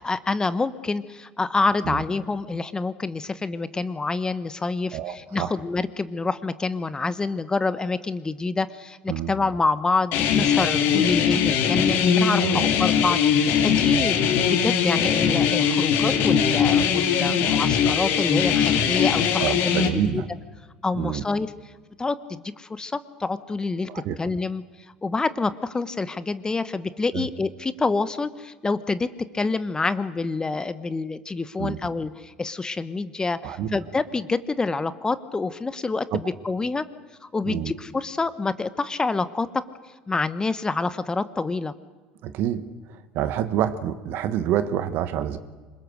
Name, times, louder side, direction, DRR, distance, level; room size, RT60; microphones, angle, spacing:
voice 1, 0.0-14.2 14.5-20.2 20.8-21.5 22.0-23.9 24.2-24.6 25.0-29.1 29.3-36.8 37.2-39.5 40.1-41.7, left 3 dB, 15° left, 14 dB, 1.1 m, -27 dB
voice 2, 4.9-5.5 9.1-9.3 12.4-12.7 13.9-14.1 19.4-20.2 20.9-21.2 23.9-24.2 27.1-27.3 31.6-31.8 33.4-33.8 36.1-36.2 37.5-37.7 42.2-45.4, right 10 dB, 55° right, 12 dB, 1.5 m, -27 dB
sound 1, 10.1-19.9, left 7 dB, 60° left, 2.7 m, -21 dB
26.5 x 22.0 x 6.5 m, 1.4 s
hypercardioid pair, 70°, 4 cm